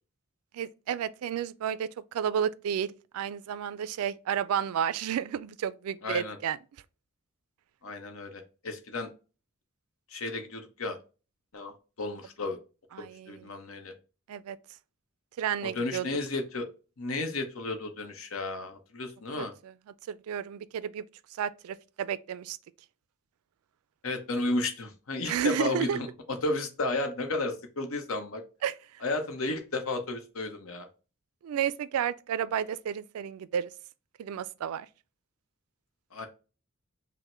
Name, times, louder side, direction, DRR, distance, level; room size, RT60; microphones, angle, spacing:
voice 1, 0.5-6.6 12.9-13.5 14.3-14.6 15.4-16.1 19.4-19.7 20.1-21.0 21.3-22.6 25.3-26.0 28.6-28.8 31.4-33.7 34.2-34.9, right 8 dB, 85° right, 0.3 m, -32 dB
voice 2, 6.0-6.4 7.8-9.1 10.1-11.0 11.5-11.7 12.0-12.6 13.0-13.9 15.6-16.7 17.0-19.5 24.0-28.4 29.0-30.9 36.1-36.3, left 2 dB, 70° left, 0.8 m, -33 dB
5.5 x 2.1 x 3.0 m
head